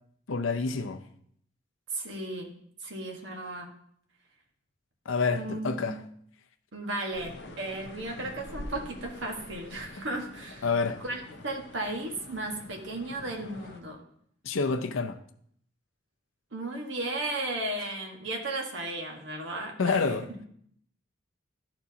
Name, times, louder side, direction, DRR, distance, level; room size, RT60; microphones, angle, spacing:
voice 1, 0.3-1.0 5.1-5.9 10.6-11.0 14.4-15.2 17.9-18.0 19.8-20.3, left 4 dB, 90° left, 0.6 m, -28 dB
voice 2, 1.9-2.5 2.8-3.7 5.4-5.9 6.7-10.7 11.0-14.0 16.5-20.4, right 2 dB, 70° right, 1.4 m, -35 dB
sound 1, 7.1-13.8, left 1 dB, 60° left, 0.8 m, -45 dB
12.5 x 4.4 x 2.8 m
head